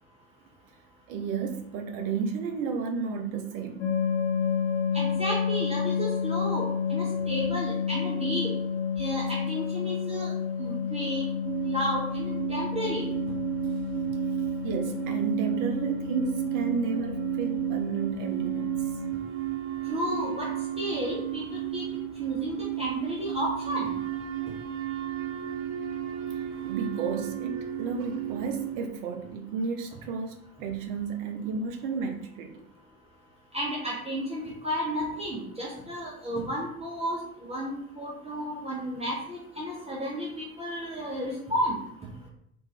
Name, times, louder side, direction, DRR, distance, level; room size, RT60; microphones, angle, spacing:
voice 1, 1.1-3.9 14.6-18.8 26.6-32.6, right 5 dB, 50° right, 4 dB, 0.8 m, -32 dB
sound 1, 3.8-19.1, left 6 dB, 45° left, 0.7 m, -31 dB
voice 2, 4.9-8.5 9.0-10.3 10.6-11.2 11.6-13.1 19.9-20.5 20.8-21.8 22.2-23.9 33.5-41.8, equal, 15° right, -4 dB, 0.9 m, -32 dB
sound 2, 11.4-28.9, right 13 dB, 30° right, 0.4 m, -33 dB
3.4 x 2.6 x 3.3 m, 0.70 s
figure-of-eight pair, 70°, 43 cm